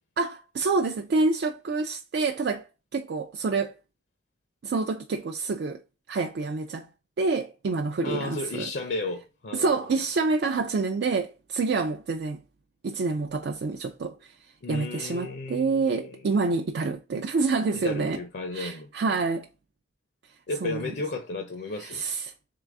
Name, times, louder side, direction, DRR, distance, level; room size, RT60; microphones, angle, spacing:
voice 1, 0.2-2.7 2.9-3.8 4.6-5.8 6.1-6.9 7.2-8.7 9.5-12.4 12.8-14.3 14.7-18.2 18.5-19.5 20.6-20.9 21.8-22.3, right 3 dB, 70° right, 0.4 m, -27 dB
voice 2, 8.0-9.7 14.6-16.2 17.7-18.9 20.5-22.0, left 2 dB, 75° left, 0.6 m, -34 dB
3.8 x 3.2 x 3.4 m
head